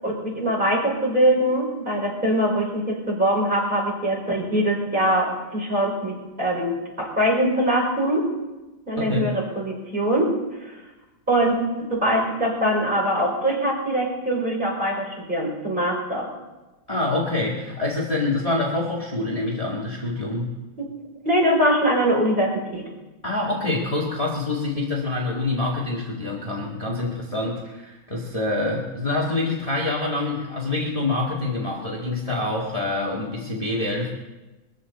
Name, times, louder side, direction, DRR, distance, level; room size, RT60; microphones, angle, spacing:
voice 1, 0.0-8.3 8.9-10.3 11.3-11.6 11.9-16.3 20.8-20.9 21.2-22.9, right 1 dB, 25° right, -4 dB, 5.5 m, -22 dB
voice 2, 9.0-9.3 16.9-20.5 23.2-34.1, left 2 dB, 20° left, -3 dB, 2.0 m, -26 dB
22.5 x 14.5 x 4.2 m, 1.1 s
omnidirectional pair, 2.1 m